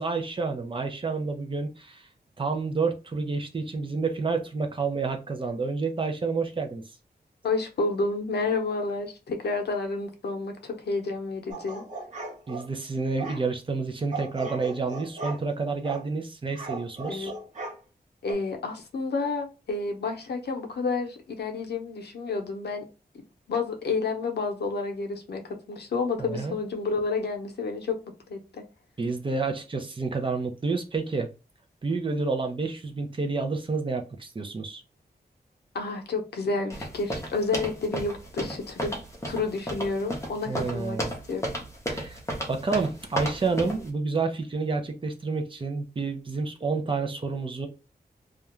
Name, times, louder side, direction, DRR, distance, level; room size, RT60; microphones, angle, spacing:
voice 1, 0.0-2.1 2.4-6.8 12.5-17.3 26.2-26.6 29.0-31.3 31.8-34.8 40.5-41.1 41.9-42.2 42.5-47.7, right 4 dB, 30° right, 4 dB, 0.5 m, -29 dB
voice 2, 7.4-11.8 17.1-17.3 18.2-22.8 23.5-28.0 28.3-28.6 35.7-39.0 39.3-41.0 41.3-41.5, left 3 dB, 85° left, 4 dB, 0.6 m, -30 dB
sound 1, 11.5-12.7 13.2-13.4 14.1-15.4 15.8-16.1 16.5-17.8 18.3-18.4, right 2 dB, 50° right, 0.9 m, -37 dB
sound 2, 36.7-43.9, equal, 15° left, 0.7 m, -33 dB
2.4 x 2.1 x 2.9 m, 0.30 s
wide cardioid pair, 135°, 17 cm